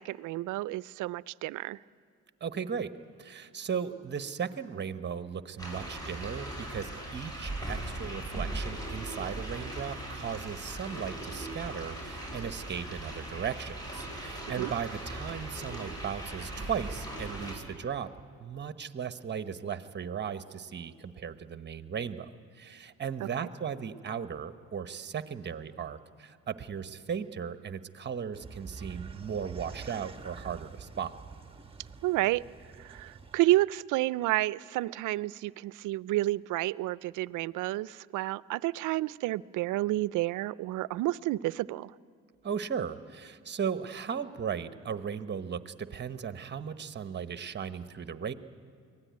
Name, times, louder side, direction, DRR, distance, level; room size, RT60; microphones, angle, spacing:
voice 1, 0.0-1.8 14.6-14.7 23.2-23.5 32.0-32.4 32.8-41.9, right 17 dB, 85° right, 20 dB, 0.5 m, -30 dB
voice 2, 2.4-2.9 3.2-18.1 18.4-31.1 42.4-48.3, right 7 dB, 35° right, 10 dB, 1.1 m, -36 dB
sound 1, 5.6-17.6, right 1 dB, 15° left, 7.1 m, -39 dB
sound 2, 28.3-33.4, right 5 dB, 20° right, 1.4 m, -46 dB
23.5 x 17.0 x 9.5 m, 2.4 s
cardioid pair, 90°, 30 cm